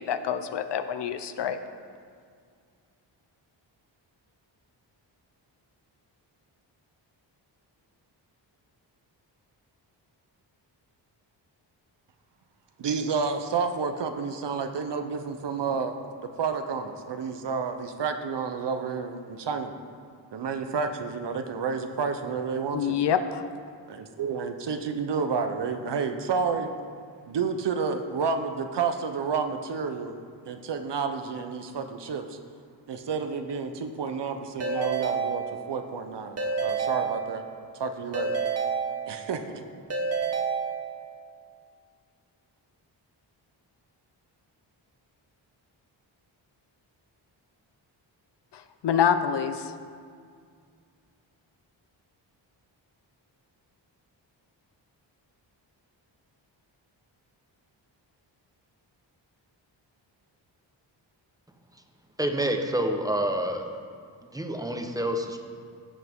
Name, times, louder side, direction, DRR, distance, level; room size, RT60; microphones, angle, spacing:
voice 1, 0.0-1.6 22.7-23.4 48.5-49.7, left 8 dB, 60° left, 10 dB, 0.6 m, -26 dB
voice 2, 12.8-15.9 16.2-19.7 20.3-23.0 23.9-26.7 27.3-30.1 30.4-32.4 32.9-37.4 37.7-38.4 39.1-39.7, right 5 dB, 60° right, 7 dB, 0.9 m, -30 dB
Keyboard (musical) / Ringtone, 34.6-35.9 36.4-37.7 38.1-39.5 39.9-41.2, right 5 dB, 35° right, 1.1 m, -29 dB
voice 3, 62.2-63.7 64.3-65.4, right 1 dB, 10° right, 4 dB, 1.0 m, -27 dB
16.0 x 5.7 x 3.7 m, 2.2 s
cardioid pair, 70°, 46 cm